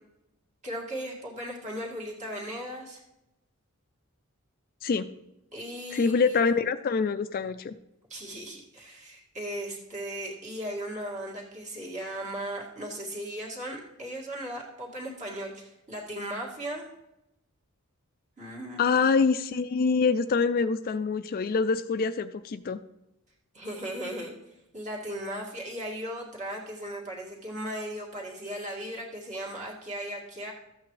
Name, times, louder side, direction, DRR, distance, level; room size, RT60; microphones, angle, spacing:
voice 1, 0.6-3.0 5.5-6.6 8.1-16.9 18.4-19.0 23.5-24.3 24.7-30.5, right 1 dB, 35° right, -2 dB, 2.1 m, -37 dB
voice 2, 5.9-7.7 18.8-22.8, left 5 dB, 45° left, 11 dB, 0.4 m, -25 dB
13.5 x 8.3 x 3.2 m, 0.90 s
head